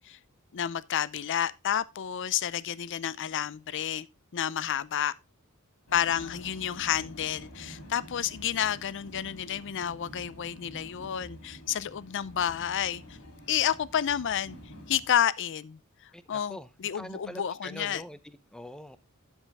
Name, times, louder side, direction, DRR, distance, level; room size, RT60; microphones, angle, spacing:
voice 1, 0.5-4.1 4.3-5.1 5.9-13.2 13.5-14.6 14.9-15.8 16.3-18.0, left 9 dB, 55° left, 0.5 m, -30 dB
Vehicle, 5.9-15.1, equal, 90° left, 3.1 m, -48 dB
voice 2, 16.1-16.7 16.9-19.0, equal, 5° left, 0.6 m, -43 dB
9.8 x 7.1 x 3.4 m
head